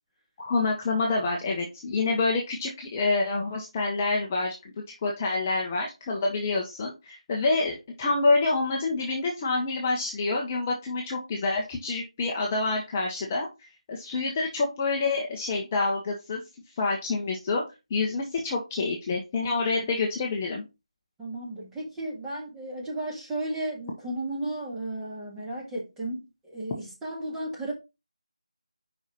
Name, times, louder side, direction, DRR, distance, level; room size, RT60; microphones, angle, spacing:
voice 1, 0.4-16.4 16.8-17.6 17.9-20.6, left 3 dB, 20° left, 0.9 m, -27 dB
voice 2, 21.2-27.7, right 1 dB, 5° right, 1.7 m, -34 dB
5.4 x 4.6 x 4.2 m
figure-of-eight pair, 165°, 3 cm